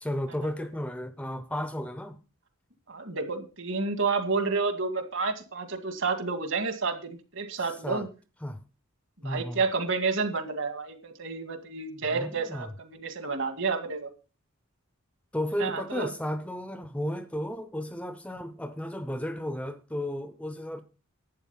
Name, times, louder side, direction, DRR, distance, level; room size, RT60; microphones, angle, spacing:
voice 1, 0.0-2.2 7.8-8.1 8.4-8.6 9.2-9.6 12.1-12.7 15.3-20.8, equal, 5° left, 0.7 m, -33 dB
voice 2, 2.9-8.1 9.2-14.1 15.6-16.1, right 4 dB, 55° right, 2.1 m, -30 dB
11.5 x 8.8 x 5.7 m
head